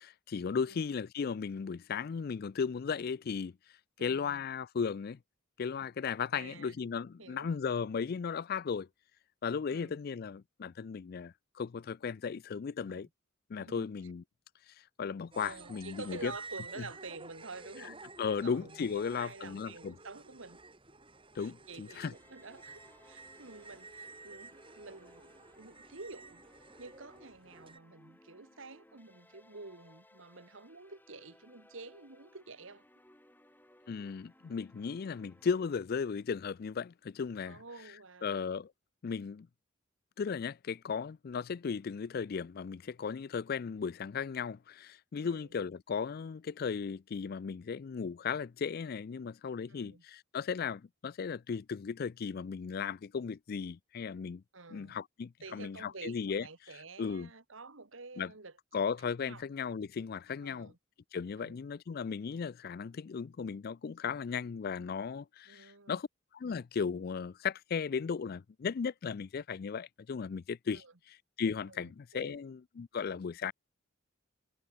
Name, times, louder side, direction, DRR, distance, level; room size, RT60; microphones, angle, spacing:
voice 1, 0.0-3.5 4.0-5.2 5.6-8.9 9.4-13.1 13.5-14.2 15.0-16.3 18.2-19.9 21.4-22.1 33.9-37.6 38.2-38.7 39.0-39.5 40.2-54.4 54.7-56.5 57.0-57.3 58.2-58.3 58.7-60.7 61.1-66.1 66.3-73.5, left 6 dB, 50° left, 0.4 m, -36 dB
voice 2, 4.0-4.4 6.3-6.8 7.2-7.5 9.7-10.0 12.9-13.1 13.6-13.9 15.4-18.0 18.3-20.6 21.4-26.4 26.8-32.8 37.5-38.4 45.2-45.5 49.7-50.0 54.5-55.0 55.4-58.5 59.2-59.4 60.4-60.8 61.4-61.6 65.5-66.0 70.7-70.9 71.7-72.4, right 3 dB, 75° right, 2.0 m, -49 dB
sound 1, 15.3-27.8, right 3 dB, 25° right, 6.0 m, -52 dB
sound 2, 22.1-35.8, left 1 dB, 10° left, 7.0 m, -62 dB
head